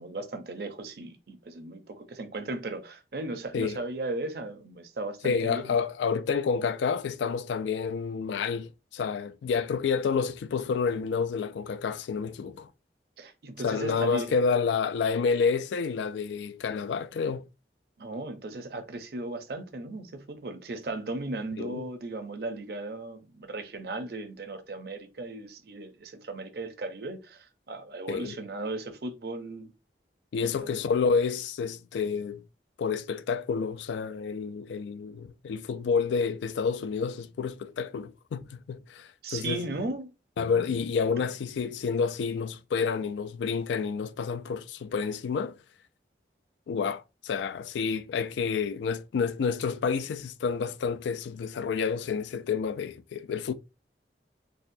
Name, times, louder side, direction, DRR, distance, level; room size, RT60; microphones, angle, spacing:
voice 1, 0.0-5.8 13.2-14.3 18.0-29.7 30.4-30.8 39.2-40.1, right 2 dB, 60° right, 0.6 m, -36 dB
voice 2, 5.2-12.7 13.6-17.4 21.6-21.9 28.1-28.4 30.3-32.4 32.8-39.6 40.4-45.6 46.7-53.5, left 5 dB, 85° left, 0.3 m, -29 dB
4.1 x 2.1 x 2.6 m
head